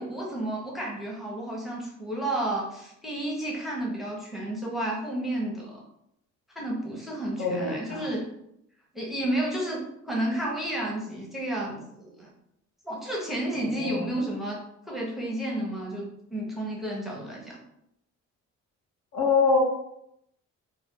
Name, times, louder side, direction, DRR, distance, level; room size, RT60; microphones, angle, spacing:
voice 1, 0.0-5.8 6.5-8.3 8.9-12.3 12.8-14.6 14.9-17.6, right 1 dB, ahead, -3 dB, 0.8 m, -31 dB
voice 2, 7.4-8.1 13.5-14.1 19.1-19.6, left 4 dB, 70° left, -1 dB, 0.8 m, -25 dB
2.4 x 2.2 x 3.6 m, 0.78 s
cardioid pair, 90°, 30 cm